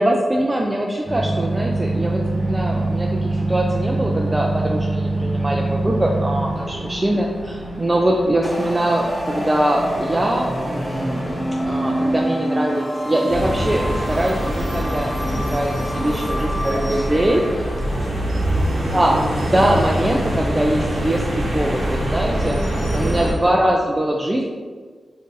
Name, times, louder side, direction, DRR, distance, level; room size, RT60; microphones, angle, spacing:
voice 1, 0.0-11.2 11.7-15.7 16.0-17.4 18.9-22.6 22.9-24.5, right 1 dB, 25° right, -1 dB, 0.3 m, -22 dB
sound 1, 1.1-12.2, right 2 dB, 65° left, 1.4 m, -25 dB
voice 2, 6.6-7.1 15.8-18.5 22.2-23.2, equal, 50° left, -4 dB, 1.0 m, -36 dB
sound 2, 8.4-18.1, equal, 5° left, 0.7 m, -28 dB
sound 3, 13.3-23.3, right 1 dB, 75° right, 0.9 m, -24 dB
2.6 x 2.5 x 3.8 m, 1.5 s
cardioid pair, 45°, 0 cm